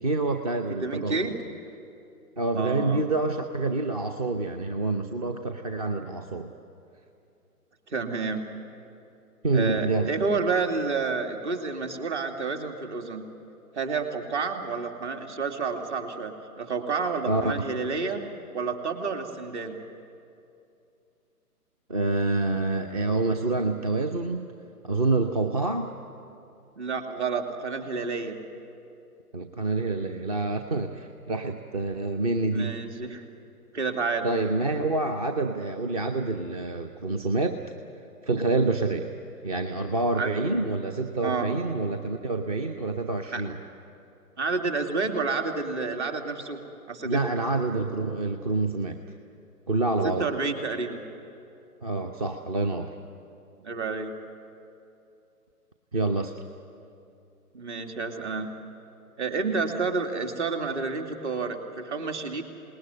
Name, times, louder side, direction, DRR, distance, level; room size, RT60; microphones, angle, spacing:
voice 1, 0.0-1.3 2.4-6.5 9.4-10.1 17.3-17.5 21.9-24.5 24.8-25.9 29.3-32.8 34.2-37.6 38.2-39.1 39.4-43.6 47.0-49.0 49.7-50.3 51.8-52.9 55.9-56.3, right 2 dB, 25° right, 6 dB, 0.7 m, -27 dB
voice 2, 0.8-1.4 2.5-3.1 7.9-8.4 9.5-13.2 13.7-18.2 18.5-19.8 26.8-28.4 32.5-33.2 33.7-34.3 40.2-40.3 41.2-41.5 43.3-43.4 44.4-46.6 46.9-47.4 50.0-51.0 53.6-54.1 57.5-58.5 59.2-62.4, right 4 dB, 45° right, 5 dB, 2.6 m, -29 dB
27.0 x 19.5 x 9.7 m, 2.6 s
figure-of-eight pair, 135°, 47 cm